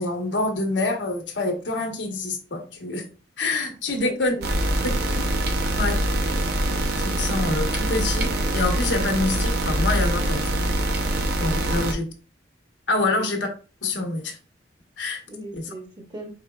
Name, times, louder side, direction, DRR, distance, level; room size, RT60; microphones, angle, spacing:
voice 1, 0.0-3.0 3.4-4.3 4.8-4.9 5.7-6.0 7.0-10.5 11.4-12.1 12.9-13.5 13.8-14.4 15.0-15.2 15.5-15.6, left 2 dB, 75° left, 1.1 m, -26 dB
voice 2, 4.0-4.8 13.1-13.3 15.3-16.3, right 1 dB, 25° right, 0.9 m, -39 dB
sound 1, 4.4-11.9, right 1 dB, 60° right, 0.7 m, -24 dB
5.2 x 4.2 x 2.3 m
head